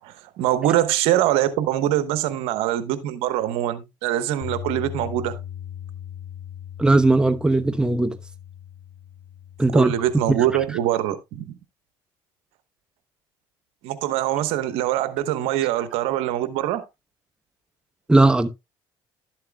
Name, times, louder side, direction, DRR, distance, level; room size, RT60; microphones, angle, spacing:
voice 1, 0.0-5.4 9.7-11.5 13.8-16.8, right 12 dB, 80° right, 1.1 m, -23 dB
Bass guitar, 4.4-10.7, left 10 dB, 90° left, 3.3 m, -38 dB
voice 2, 6.8-8.2 9.6-9.9 10.3-10.4 18.1-18.5, right 2 dB, 10° right, 0.9 m, -18 dB
12.0 x 7.6 x 2.3 m
supercardioid pair, 85°, 10 cm